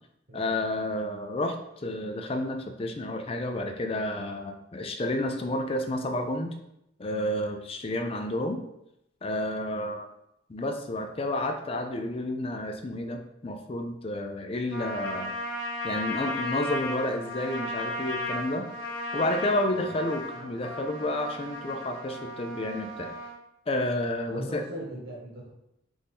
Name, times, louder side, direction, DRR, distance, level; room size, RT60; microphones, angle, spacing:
voice 1, 0.3-6.5 7.0-8.6 9.2-10.1 10.5-15.4 15.8-18.7 19.1-23.1 23.7-24.6, left 1 dB, 30° left, 5 dB, 0.4 m, -30 dB
Trumpet, 14.7-23.4, left 1 dB, 85° left, 0.9 m, -35 dB
voice 2, 24.3-25.5, right 1 dB, 65° right, -4 dB, 1.1 m, -39 dB
4.6 x 2.6 x 3.6 m, 0.82 s
head